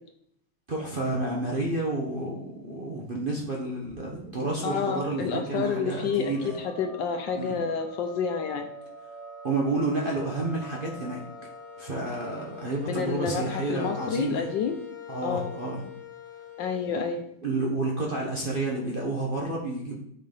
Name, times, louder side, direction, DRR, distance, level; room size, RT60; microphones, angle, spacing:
voice 1, 0.7-6.6 7.3-7.5 9.4-11.2 11.8-14.5 15.1-15.8 17.4-20.0, right 2 dB, 50° right, -2 dB, 0.6 m, -30 dB
sound 1, 3.8-17.1, left 3 dB, 80° right, 3.0 m, -43 dB
voice 2, 4.6-6.3 6.6-8.7 12.9-14.8 15.2-15.5 16.6-17.2, left 6 dB, 70° left, 5 dB, 1.2 m, -29 dB
7.4 x 3.8 x 5.4 m, 0.70 s
omnidirectional pair, 2.4 m